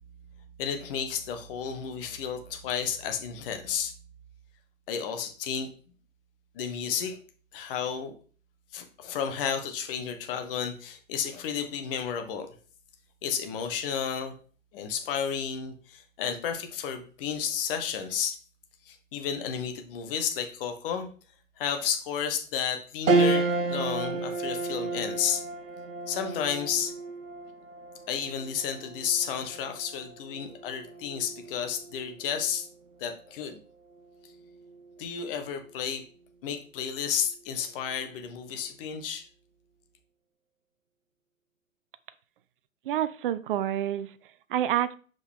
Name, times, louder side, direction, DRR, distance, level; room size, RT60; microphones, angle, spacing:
voice 1, 0.6-3.9 4.9-5.7 6.5-7.2 7.5-8.1 8.7-12.5 13.2-14.3 14.7-18.4 18.8-21.1 21.6-25.4 26.1-26.9 28.1-32.7 33.0-33.6 35.0-36.0 36.4-39.3, left 7 dB, 45° left, 7 dB, 1.1 m, -32 dB
sound 1, 23.1-32.7 33.1-33.2 34.6-35.0, right 3 dB, 75° right, 1.2 m, -31 dB
voice 2, 42.8-44.9, right 11 dB, 45° right, 15 dB, 0.5 m, -28 dB
6.3 x 5.2 x 3.6 m, 0.41 s
figure-of-eight pair, 105°, 40 cm